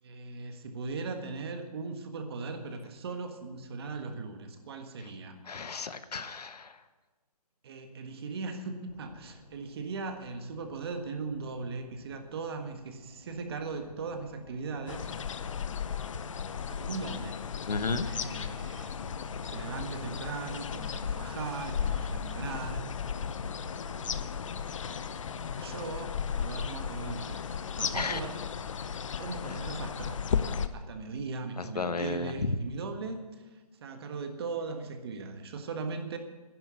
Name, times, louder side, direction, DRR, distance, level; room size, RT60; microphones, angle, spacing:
voice 1, 0.0-5.4 7.6-15.1 16.6-17.4 18.0-19.0 19.4-23.0 23.5-24.1 25.3-28.3 29.2-30.2 30.7-36.2, right 4 dB, 40° right, 6 dB, 1.5 m, -39 dB
voice 2, 5.5-6.8 17.7-18.1 27.9-28.2 29.5-29.6 31.6-32.5, left 4 dB, 85° left, 11 dB, 1.1 m, -33 dB
sound 1, 8.9-27.3, left 2 dB, 30° left, 3.5 m, -53 dB
sound 2, 14.9-30.7, left 7 dB, 55° left, 0.8 m, -35 dB
11.0 x 11.0 x 7.6 m, 1.3 s
hypercardioid pair, 160°, 20 cm